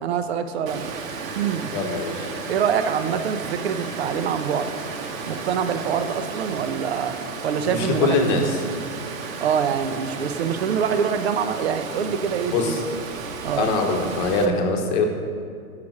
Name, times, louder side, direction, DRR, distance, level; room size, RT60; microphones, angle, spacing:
voice 1, 0.0-0.9 1.4-1.7 2.5-4.7 5.3-7.2 7.4-8.4 9.4-12.8 13.4-13.7, right 7 dB, 45° right, 10 dB, 0.6 m, -25 dB
Water, 0.7-14.5, right 5 dB, 60° right, 0.9 m, -34 dB
sound 1, 0.9-11.8, right 2 dB, 5° right, 1.3 m, -45 dB
voice 2, 1.7-2.3 7.6-8.6 12.5-12.8 13.6-15.0, left 3 dB, 30° left, 3 dB, 1.0 m, -23 dB
6.5 x 5.8 x 7.2 m, 2.2 s
hypercardioid pair, 140°, 44 cm